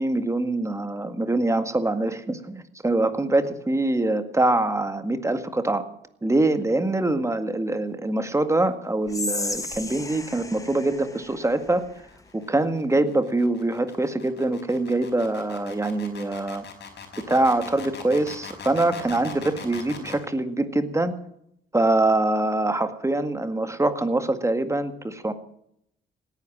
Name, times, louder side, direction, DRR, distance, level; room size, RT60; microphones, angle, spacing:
voice 1, 0.0-5.8 6.2-11.9 12.3-16.7 17.3-21.2 21.7-25.3, right 2 dB, 15° right, 9 dB, 1.9 m, -24 dB
Whispering, 9.1-12.3, left 2 dB, 15° left, 1.6 m, -34 dB
sound 1, 11.0-20.2, left 6 dB, 60° left, 5.1 m, -41 dB
17.5 x 10.5 x 7.4 m, 0.74 s
cardioid pair, 90°, 20 cm